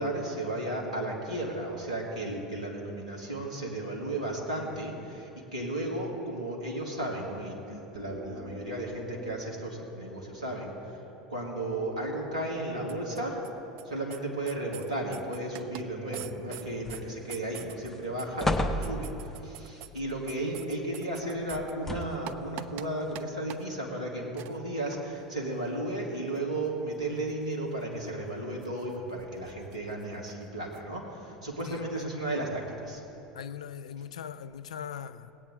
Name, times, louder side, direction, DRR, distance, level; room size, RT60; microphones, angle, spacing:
voice 1, 0.0-11.0 11.3-13.4 13.8-33.0, right 1 dB, 75° right, 2.1 m, -34 dB
sound 1, 7.9-20.1 20.3-20.4, right 2 dB, 30° right, 1.2 m, -48 dB
sound 2, 12.9-13.5 13.8-13.9 14.1-14.2 14.5-15.8 16.1-17.0 17.3-21.7 22.0-22.9 23.1-23.2 23.5-23.6 24.4-24.6 26.4-26.5 28.6-28.9 29.7-29.8 30.0-30.1 30.7-30.8, right 14 dB, 45° right, 0.4 m, -43 dB
sound 3, 16.8-17.4 17.8-17.9 18.4-19.4 21.5-22.3 23.1-23.2, left 1 dB, 10° left, 0.9 m, -31 dB
voice 2, 31.6-32.1 33.3-35.3, left 8 dB, 70° left, 0.4 m, -40 dB
18.0 x 8.7 x 3.9 m
figure-of-eight pair, 75°, 4 cm